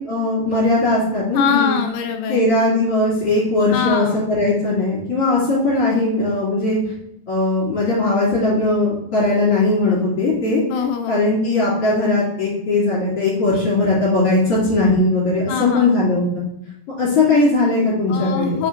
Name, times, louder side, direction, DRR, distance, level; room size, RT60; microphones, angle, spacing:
voice 1, 0.1-1.8 2.3-6.8 7.3-10.6 11.1-16.3 17.0-18.6, left 2 dB, 40° left, -9 dB, 2.8 m, -19 dB
voice 2, 1.3-2.5 3.7-4.2 10.7-11.2 15.5-15.9 18.1-18.7, left 8 dB, 85° left, 4 dB, 2.4 m, -23 dB
6.4 x 5.0 x 3.9 m, 0.77 s
omnidirectional pair, 5.3 m